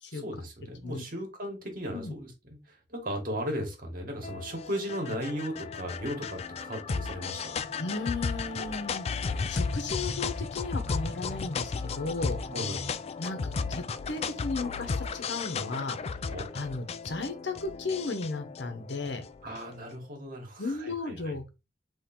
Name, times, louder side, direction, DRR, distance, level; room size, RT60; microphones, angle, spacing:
voice 1, 0.1-2.6 2.9-7.7 12.5-12.9 16.3-16.5 19.4-21.3, equal, 50° right, 1.7 m, -36 dB
sound 1, 4.2-19.8, left 5 dB, 35° left, 0.3 m, -34 dB
voice 2, 7.8-9.1 9.5-12.4 13.2-16.0 16.5-19.2 20.6-21.5, left 3 dB, 80° left, 1.0 m, -35 dB
3.8 x 3.2 x 4.3 m
head